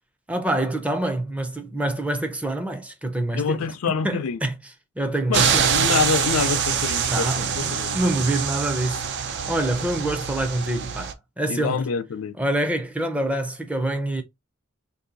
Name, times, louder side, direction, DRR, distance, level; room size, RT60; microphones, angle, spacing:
voice 1, 0.3-3.6 4.0-4.5 5.0-5.7 7.1-9.1 9.5-11.8 12.4-14.2, right 1 dB, 5° right, 0.5 m, -26 dB
voice 2, 3.3-4.4 5.3-8.0 11.5-12.4, left 5 dB, 85° left, 0.4 m, -26 dB
sound 1, 5.3-11.1, right 7 dB, 55° right, 0.5 m, -25 dB
2.7 x 2.3 x 3.8 m
head